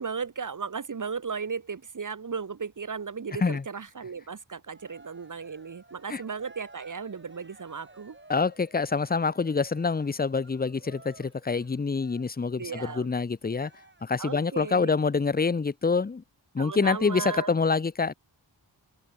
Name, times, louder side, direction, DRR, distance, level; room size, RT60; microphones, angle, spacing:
voice 1, 0.0-8.2 12.6-13.1 14.2-14.9 16.6-17.5, right 5 dB, 45° right, 1.2 m, -36 dB
Cheering, 4.7-14.7, right 2 dB, 25° right, 4.6 m, -53 dB
voice 2, 8.3-13.7 14.0-16.2 16.5-18.1, left 4 dB, 20° left, 0.6 m, -26 dB
open air
wide cardioid pair, 80°, 43 cm